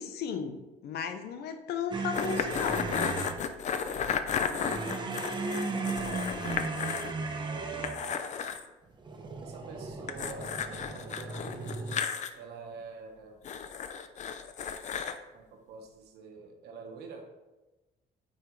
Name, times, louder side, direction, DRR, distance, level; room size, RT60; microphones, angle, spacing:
voice 1, 0.0-3.0, left 6 dB, 70° left, 8 dB, 0.8 m, -35 dB
sound 1, 1.9-3.4 4.6-8.1 9.0-12.0, right 3 dB, 25° right, 1.0 m, -36 dB
sound 2, 2.1-7.1 7.4-7.5 7.8-8.6 10.1-12.3 13.4-15.2, left 7 dB, 45° left, 0.6 m, -33 dB
voice 2, 4.6-6.2 7.4-8.3 9.4-11.4 12.3-13.4 15.3-17.3, right 5 dB, 75° right, 2 dB, 1.4 m, -47 dB
9.0 x 5.4 x 3.2 m, 1.1 s
cardioid pair, 110°, 17 cm